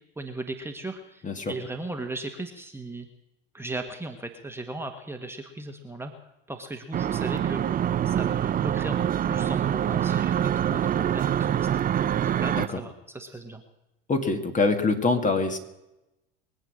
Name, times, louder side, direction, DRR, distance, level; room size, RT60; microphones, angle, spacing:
voice 1, 0.2-3.1 3.5-6.1 6.5-13.6, right 2 dB, 10° right, 4 dB, 1.6 m, -37 dB
sound 1, 6.9-12.7, right 10 dB, 30° right, 0.6 m, -25 dB
voice 2, 14.1-15.6, left 3 dB, 25° left, 6 dB, 2.1 m, -24 dB
23.0 x 8.1 x 6.5 m, 0.93 s
hypercardioid pair, 75°, 29 cm